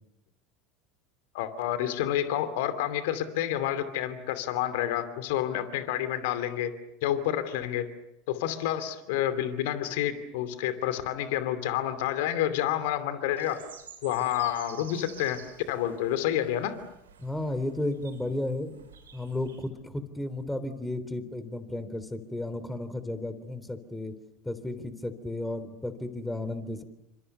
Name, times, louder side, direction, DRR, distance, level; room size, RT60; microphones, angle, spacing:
voice 1, 1.3-6.7 7.0-7.9 8.3-13.6 14.0-15.4 15.7-16.8, left 11 dB, 60° left, 11 dB, 2.7 m, -29 dB
sound 1, 13.4-19.6, right 6 dB, 75° right, 6.0 m, -51 dB
voice 2, 17.2-18.8 19.1-24.1 24.5-26.8, left 1 dB, 5° left, 12 dB, 3.5 m, -33 dB
29.0 x 26.0 x 6.9 m, 0.85 s
figure-of-eight pair, 75°, 0 cm